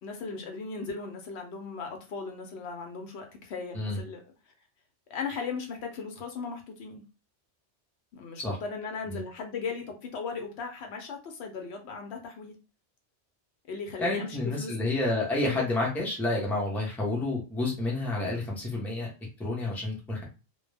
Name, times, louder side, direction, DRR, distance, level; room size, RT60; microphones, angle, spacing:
voice 1, 0.0-4.2 5.1-7.0 8.1-12.5 13.7-14.8 15.4-15.6, left 4 dB, 70° left, 4 dB, 0.9 m, -37 dB
voice 2, 14.0-19.1 19.4-20.2, left 2 dB, ahead, -3 dB, 0.6 m, -29 dB
2.2 x 2.1 x 3.2 m, 0.32 s
omnidirectional pair, 1.2 m